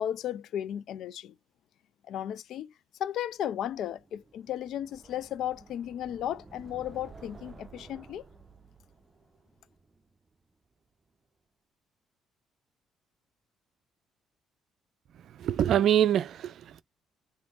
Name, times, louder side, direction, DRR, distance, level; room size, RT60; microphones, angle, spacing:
voice 1, 0.0-1.3 2.1-2.7 3.0-8.2, left 11 dB, 70° left, 0.4 m, -34 dB
sound 1, 3.5-10.5, right 4 dB, 25° right, 0.7 m, -53 dB
voice 2, 15.2-16.8, right 10 dB, 65° right, 0.4 m, -25 dB
3.4 x 2.7 x 3.9 m
supercardioid pair, 70°, 0 cm